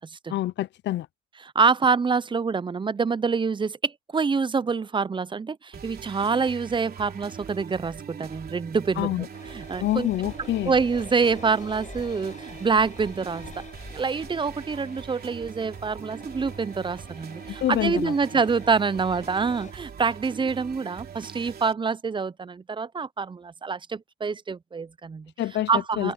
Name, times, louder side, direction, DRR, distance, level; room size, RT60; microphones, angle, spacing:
voice 1, 0.3-1.1 9.0-9.3 9.8-10.7 17.5-18.1 25.4-25.7 26.0-26.1, left 14 dB, 65° left, 0.5 m, -26 dB
voice 2, 1.5-9.3 9.5-10.1 10.7-13.5 13.9-25.3 25.7-26.1, right 5 dB, 25° right, 0.6 m, -26 dB
sound 1, 5.7-21.7, right 7 dB, 50° right, 3.4 m, -42 dB
sound 2, 9.3-19.7, left 5 dB, 40° left, 5.9 m, -47 dB
open air
cardioid pair, 90°, 20 cm